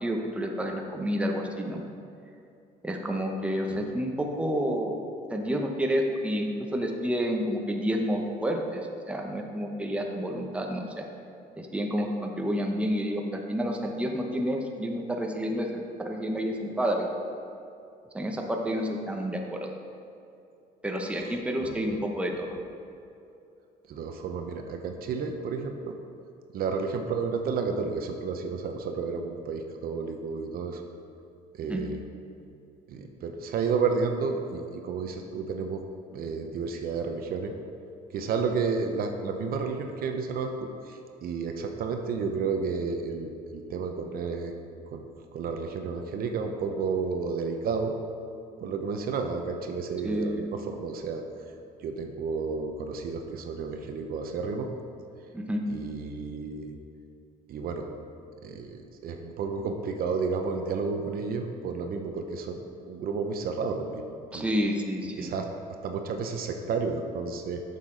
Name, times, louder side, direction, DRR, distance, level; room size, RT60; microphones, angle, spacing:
voice 1, 0.0-1.8 2.8-4.9 5.3-11.0 11.5-15.7 16.0-17.1 18.1-19.7 20.8-22.6 31.7-31.8 50.0-50.5 55.3-55.6 64.3-65.4, equal, 5° right, 1 dB, 0.8 m, -29 dB
voice 2, 21.1-21.9 23.9-26.0 26.5-30.8 31.5-32.0 32.9-35.8 36.1-37.5 38.1-44.5 44.9-45.1 45.3-47.9 48.6-51.2 51.8-54.7 55.7-56.8 57.5-57.9 58.4-62.6 62.9-64.1 64.3-64.6 65.2-65.5 65.8-67.6, right 5 dB, 60° right, 4 dB, 0.8 m, -31 dB
9.3 x 6.7 x 3.8 m, 2.6 s
cardioid pair, 110°, 17 cm